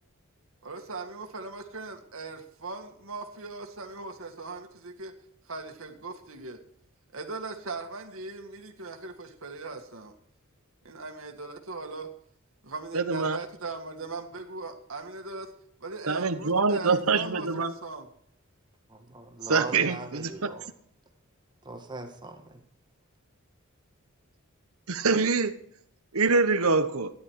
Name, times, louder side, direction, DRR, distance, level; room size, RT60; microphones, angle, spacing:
voice 1, 0.6-5.2 5.5-6.6 7.1-10.1 10.8-12.1 12.6-15.5 15.8-18.1, right 3 dB, 70° right, 4 dB, 2.0 m, -39 dB
voice 2, 12.9-13.4 16.1-17.7 19.5-20.5 24.9-25.5 26.1-27.1, right 4 dB, 85° right, 11 dB, 1.1 m, -25 dB
voice 3, 18.9-20.6 21.7-22.4, right 2 dB, 20° right, 5 dB, 1.8 m, -40 dB
13.5 x 11.0 x 4.8 m, 0.68 s
head